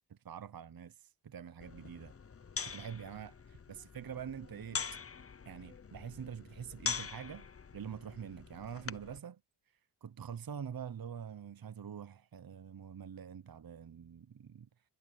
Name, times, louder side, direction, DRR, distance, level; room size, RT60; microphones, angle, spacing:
voice 1, 0.1-2.1 2.6-4.9 5.5-9.4 10.0-14.7, right 8 dB, 45° right, 0.9 m, -45 dB
sound 1, 1.6-9.2, left 5 dB, 30° left, 0.7 m, -43 dB
cardioid pair, 55°, 47 cm